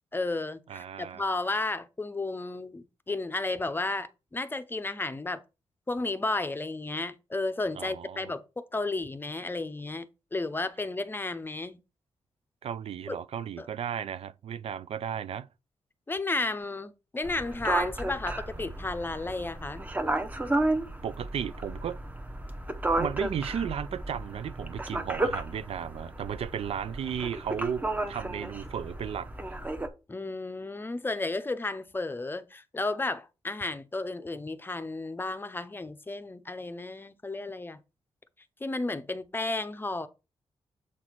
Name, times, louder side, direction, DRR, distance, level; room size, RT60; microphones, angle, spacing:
voice 1, 0.1-5.4 5.9-11.8 13.1-13.2 13.6-13.7 16.1-19.8 30.1-37.8 38.6-40.1, left 2 dB, 20° left, 0.6 m, -33 dB
voice 2, 0.7-1.2 7.8-8.3 12.6-15.5 21.0-22.0 23.0-29.6, right 8 dB, 65° right, 0.4 m, -35 dB
sound 1, 17.2-29.9, right 2 dB, 15° right, 0.8 m, -33 dB
7.4 x 4.1 x 4.5 m
wide cardioid pair, 130°, 11 cm